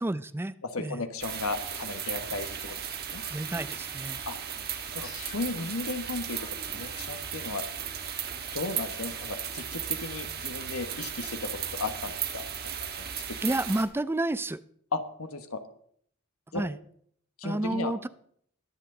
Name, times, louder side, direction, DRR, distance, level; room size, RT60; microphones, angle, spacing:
voice 1, 0.0-1.0 3.3-4.2 13.4-14.6 16.5-16.8 17.4-18.1, right 1 dB, 10° right, 16 dB, 0.4 m, -30 dB
voice 2, 0.6-2.8 3.1-3.2 4.3-4.4 4.9-6.4 6.7-7.6 8.3-12.4 13.0-13.4 14.9-15.6 16.5-16.6 17.4-17.9, left 3 dB, 85° left, 8 dB, 1.3 m, -35 dB
sound 1, 1.2-13.9, right 8 dB, 50° right, 1.4 m, -36 dB
sound 2, 2.1-7.9, left 2 dB, 45° left, 3.1 m, -52 dB
21.5 x 7.9 x 3.8 m, 0.64 s
head